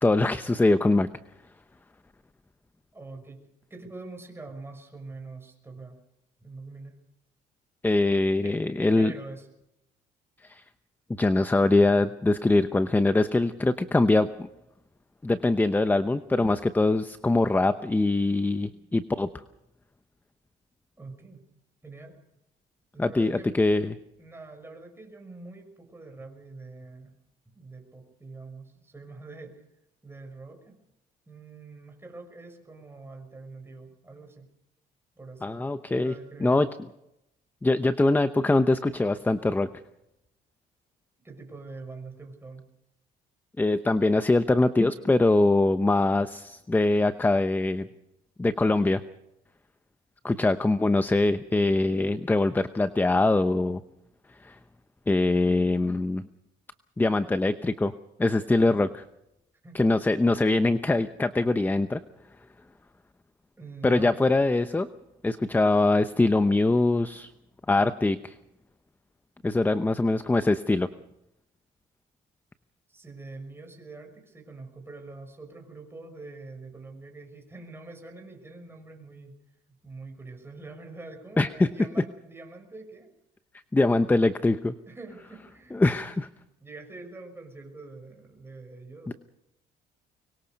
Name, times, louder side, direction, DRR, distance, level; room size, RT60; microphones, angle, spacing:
voice 1, 0.0-1.1 7.8-9.1 10.4-10.6 11.2-14.5 15.2-19.3 23.0-23.9 35.4-36.1 36.4-36.7 37.6-39.7 43.6-47.9 48.4-49.0 50.2-53.8 54.4-54.6 55.1-56.2 57.0-57.9 58.2-59.0 59.7-62.0 63.8-64.9 65.2-67.3 67.7-68.3 69.4-70.9 81.4-81.7 83.7-84.7 85.7-86.3 89.1-89.2, left 2 dB, 10° left, 11 dB, 0.8 m, -23 dB
voice 2, 2.9-3.4 3.7-6.0 6.4-7.0 8.4-9.5 18.6-18.9 21.0-21.4 21.8-22.2 22.9-23.6 24.2-27.1 27.5-29.6 30.0-30.7 31.3-34.5 35.2-36.7 41.2-42.6 59.6-59.8 63.6-64.2 72.9-79.3 79.7-83.1 84.9-85.8 86.6-89.1, right 3 dB, 15° right, 4 dB, 6.4 m, -44 dB
24.5 x 22.5 x 5.4 m, 0.84 s
cardioid pair, 110°, 17 cm